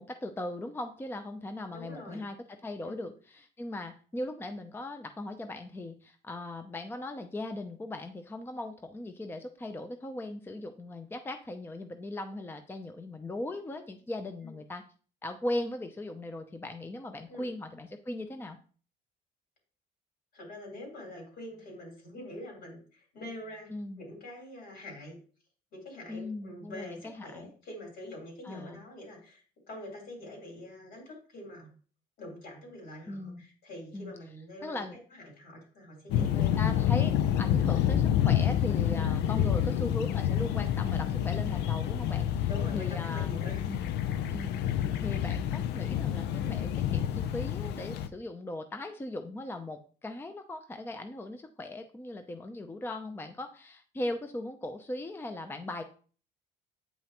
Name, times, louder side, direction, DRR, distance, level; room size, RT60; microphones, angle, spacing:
voice 1, 0.0-2.4 2.6-14.8 15.2-18.6 23.7-24.1 26.1-27.5 28.4-28.8 33.1-33.4 33.9-34.1 34.6-35.0 36.2-43.3 43.6-43.9 44.3-44.6 45.0-55.8, left 1 dB, 15° left, 7 dB, 0.6 m, -39 dB
voice 2, 1.7-2.3 2.8-3.1 14.4-14.6 17.3-17.5 20.3-23.7 24.0-25.2 25.7-31.7 32.2-36.7 39.2-39.5 40.3-40.5 42.5-43.6, left 1 dB, 65° left, 0 dB, 4.2 m, -45 dB
sound 1, 36.1-48.1, left 10 dB, 85° left, 0.5 m, -28 dB
8.6 x 5.5 x 3.0 m, 0.40 s
cardioid pair, 110°, 17 cm